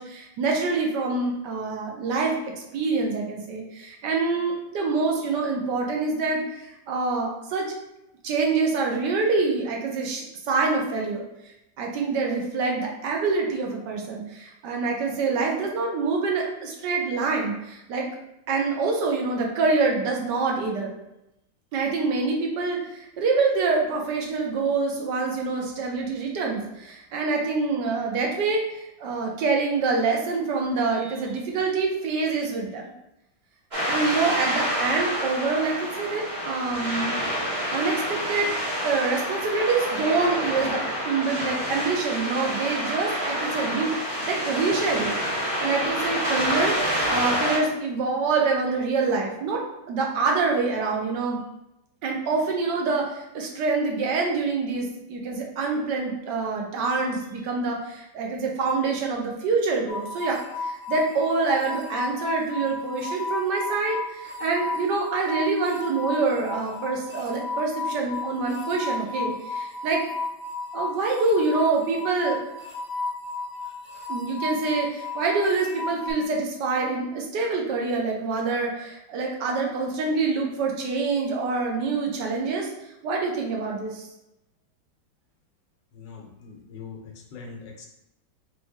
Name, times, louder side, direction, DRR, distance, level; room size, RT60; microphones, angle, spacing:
voice 1, 0.0-2.4 2.7-7.6 8.2-11.2 11.8-18.1 18.5-20.9 21.7-32.9 33.9-37.2 37.7-38.5 38.8-45.1 45.6-51.4 52.0-70.0 70.7-72.4 74.1-82.7 83.0-84.1, right 4 dB, 70° right, 0 dB, 1.4 m, -26 dB
sound 1, 33.7-47.6, equal, 35° right, 0.8 m, -28 dB
sound 2, 59.9-76.1, left 3 dB, 40° left, 1.2 m, -33 dB
voice 2, 85.9-87.9, left 5 dB, 75° left, 1 dB, 1.5 m, -42 dB
4.0 x 3.3 x 3.5 m, 0.88 s
omnidirectional pair, 2.0 m